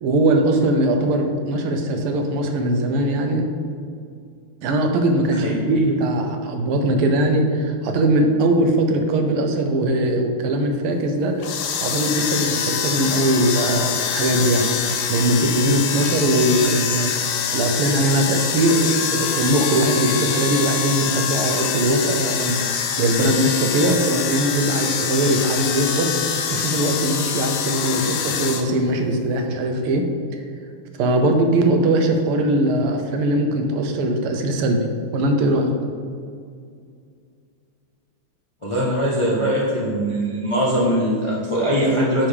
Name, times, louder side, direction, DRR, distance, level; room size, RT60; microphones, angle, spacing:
voice 1, 0.0-3.5 4.6-17.1 17.5-26.2 26.5-30.1 31.0-35.7, right 1 dB, 90° right, 4 dB, 1.6 m, -20 dB
sound 1, 11.4-28.6, left 7 dB, 90° left, 1.5 m, -25 dB
voice 2, 38.6-42.3, equal, 50° left, -6 dB, 0.3 m, -21 dB
9.4 x 4.4 x 3.4 m, 2.2 s
omnidirectional pair, 2.4 m